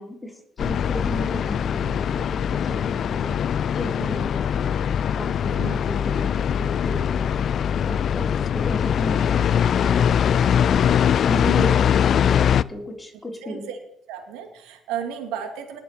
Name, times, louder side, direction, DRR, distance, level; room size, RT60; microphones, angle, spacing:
voice 1, 0.0-3.4 3.7-4.8 5.1-7.3 7.9-10.9 11.3-13.7, equal, 15° left, 0 dB, 4.0 m, -34 dB
sound 1, 0.6-12.6, left 8 dB, 55° left, 0.4 m, -22 dB
voice 2, 11.4-11.8 13.4-13.8 14.1-15.8, right 8 dB, 75° right, 4 dB, 2.6 m, -33 dB
20.0 x 7.3 x 4.6 m, 0.80 s
hypercardioid pair, 65°, 0 cm